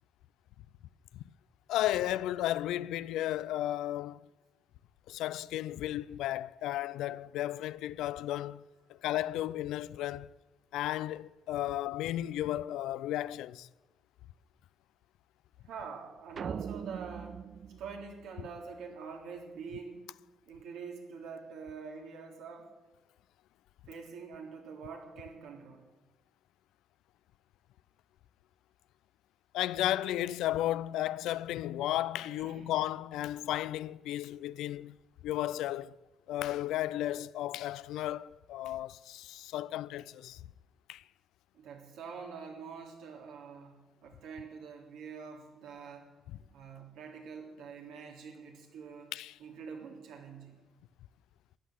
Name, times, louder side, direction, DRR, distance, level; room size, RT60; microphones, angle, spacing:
voice 1, 1.7-4.2 5.1-8.6 8.9-10.3 10.7-13.7 29.5-35.0 35.2-35.9 36.3-40.4 40.9-41.0 46.3-46.4 49.1-49.4, left 13 dB, 90° left, 0.4 m, -34 dB
voice 2, 15.7-17.4 17.8-20.1 20.5-22.7 23.9-25.9 32.3-32.7 41.5-46.1 46.5-49.1 49.4-50.6, right 5 dB, 85° right, 3.4 m, -45 dB
sound 1, 16.4-18.8, right 7 dB, 50° right, 0.4 m, -41 dB
14.0 x 11.5 x 9.3 m
cardioid pair, 90°, 0 cm